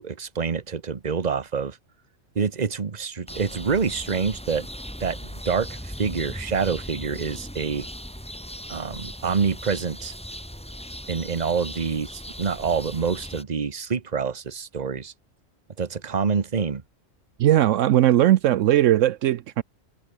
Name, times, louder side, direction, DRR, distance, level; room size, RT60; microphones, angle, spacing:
voice 1, 0.0-1.8 2.3-4.7 5.0-7.9 8.7-10.1 11.1-15.1 15.8-16.8, right 5 dB, 35° right, 1.2 m, -27 dB
sound 1, 3.3-13.4, equal, 5° left, 3.3 m, -38 dB
voice 2, 17.4-19.6, right 13 dB, 75° right, 0.9 m, -18 dB
omnidirectional pair, 1.3 m